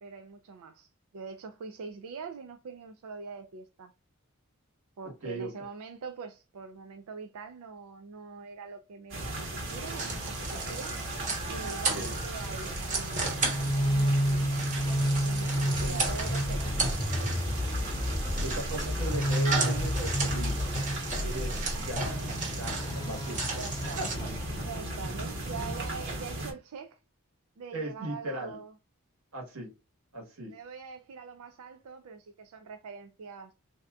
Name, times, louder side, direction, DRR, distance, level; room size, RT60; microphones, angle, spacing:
voice 1, 0.0-3.9 5.0-11.0 11.5-13.4 13.7-14.9 15.2-17.4 18.8-18.9 21.7-22.1 23.5-24.1 24.6-27.0 27.6-28.7 30.5-33.5, right 5 dB, 90° right, 0.4 m, -44 dB
sound 1, 9.1-26.5, right 1 dB, 55° right, 1.3 m, -37 dB
sound 2, 9.7-24.2, right 3 dB, 35° right, 1.0 m, -36 dB
sound 3, 13.2-25.0, equal, 20° left, 0.4 m, -31 dB
voice 2, 18.4-20.7 21.2-21.5 21.8-22.1 22.5-23.5 23.8-24.3 26.4-26.5 27.7-28.6 29.3-29.7 30.1-30.5, right 1 dB, 75° right, 1.4 m, -38 dB
3.3 x 2.7 x 2.3 m
head